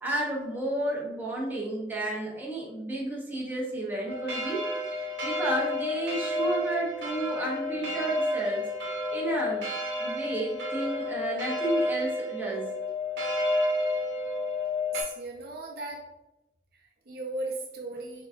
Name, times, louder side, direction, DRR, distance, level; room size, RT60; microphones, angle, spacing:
voice 1, 0.0-8.6 9.1-9.7 10.0-12.7, right 1 dB, 10° right, -4 dB, 0.8 m, -32 dB
sound 1, 4.1-15.0, left 1 dB, 90° right, 0.9 m, -30 dB
voice 2, 14.9-16.0 16.7-18.3, right 2 dB, 60° right, 0 dB, 0.6 m, -37 dB
4.4 x 2.8 x 2.5 m, 0.91 s
head